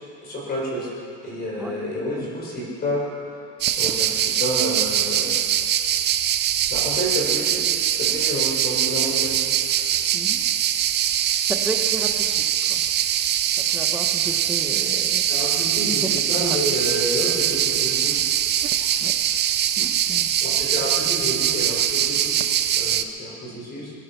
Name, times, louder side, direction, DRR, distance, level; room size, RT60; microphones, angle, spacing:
voice 1, 0.2-0.9 1.2-3.4 3.8-5.3 6.7-7.6 7.9-9.4 9.7-9.9 15.3-18.2 20.4-22.4 22.7-23.9, equal, 30° left, -4 dB, 4.9 m, -29 dB
sound 1, 3.6-23.0, right 10 dB, 30° right, 0.6 m, -22 dB
voice 2, 11.4-12.8 13.7-15.6 16.0-16.1 16.4-16.6 19.0-19.1 19.8-20.3 21.1-21.2, right 2 dB, 5° right, 3 dB, 1.1 m, -33 dB
21.5 x 11.0 x 5.8 m, 2.5 s
cardioid pair, 155°, 33 cm